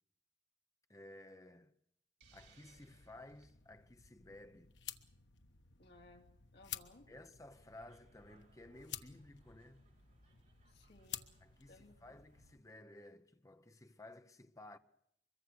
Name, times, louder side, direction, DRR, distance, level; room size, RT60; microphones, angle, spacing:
voice 1, 0.9-1.7 2.3-4.7 7.1-9.9 11.4-14.8, left 1 dB, 20° left, 0.9 m, -56 dB
sound 1, 2.2-12.6, left 10 dB, 85° left, 1.2 m, -53 dB
Hiss, 2.2-3.5, right 7 dB, 75° right, 3.3 m, -67 dB
voice 2, 5.8-6.3 6.5-7.1 10.7-11.3 11.7-12.1, left 2 dB, 65° left, 2.8 m, -61 dB
sound 2, 7.5-12.6, right 1 dB, 45° right, 3.8 m, -71 dB
24.0 x 22.5 x 6.3 m
head